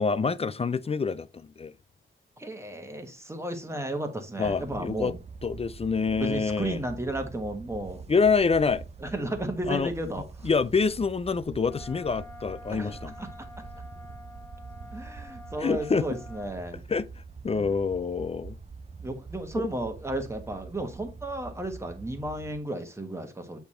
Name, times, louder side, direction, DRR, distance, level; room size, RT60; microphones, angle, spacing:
voice 1, 0.0-1.7 4.4-5.1 5.4-6.8 8.1-8.8 9.7-9.9 10.4-13.2 15.6-16.0 16.9-17.1 17.4-18.6 19.6-19.7, left 5 dB, 30° left, 0.4 m, -26 dB
voice 2, 2.4-5.2 6.2-8.0 9.0-10.5 12.7-13.3 14.9-16.8 17.5-17.7 19.0-23.6, right 1 dB, 15° right, 1.3 m, -34 dB
sound 1, 4.4-22.6, right 5 dB, 30° right, 0.5 m, -44 dB
Wind instrument woodwind instrument, 11.6-16.6, left 3 dB, 10° left, 1.3 m, -48 dB
8.2 x 3.5 x 4.2 m
wide cardioid pair, 120°, 21 cm